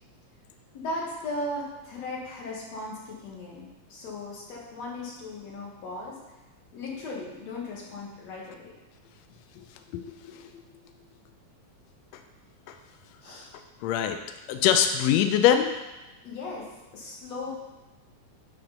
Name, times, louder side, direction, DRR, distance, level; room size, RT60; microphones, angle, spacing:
voice 1, 0.7-6.4 6.7-8.8 13.2-13.5 16.2-17.5, left 2 dB, 65° left, -3 dB, 2.5 m, -37 dB
voice 2, 9.9-10.5 12.7-12.8 13.8-14.2 14.5-15.8, left 9 dB, 80° left, 6 dB, 1.6 m, -23 dB
8.7 x 3.6 x 5.2 m, 1.1 s
omnidirectional pair, 3.5 m